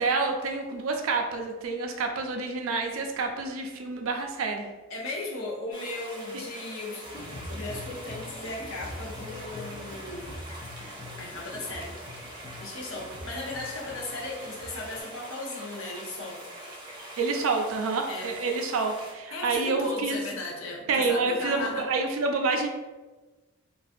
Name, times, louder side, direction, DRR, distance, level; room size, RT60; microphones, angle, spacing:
voice 1, 0.0-4.6 17.2-20.2 20.9-22.7, right 3 dB, 85° right, 4 dB, 0.4 m, -28 dB
voice 2, 4.9-7.0 7.5-10.3 11.2-11.9 12.6-16.5 18.1-18.3 19.3-21.9, left 2 dB, 80° left, -1 dB, 0.6 m, -36 dB
sound 1, 5.7-19.1, right 1 dB, 20° right, 0.6 m, -44 dB
sound 2, 7.0-15.0, left 2 dB, 35° left, 0.4 m, -43 dB
2.5 x 2.2 x 2.5 m, 1.2 s
head